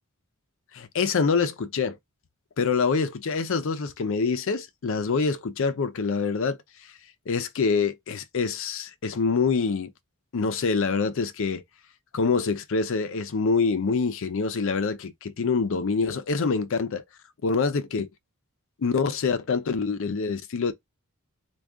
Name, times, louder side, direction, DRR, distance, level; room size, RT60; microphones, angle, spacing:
voice 1, 0.7-2.0 2.6-6.6 7.3-9.9 10.3-11.6 12.1-17.0 17.4-18.1 18.8-20.7, left 4 dB, 60° left, 0.5 m, -25 dB
3.6 x 2.3 x 3.4 m
head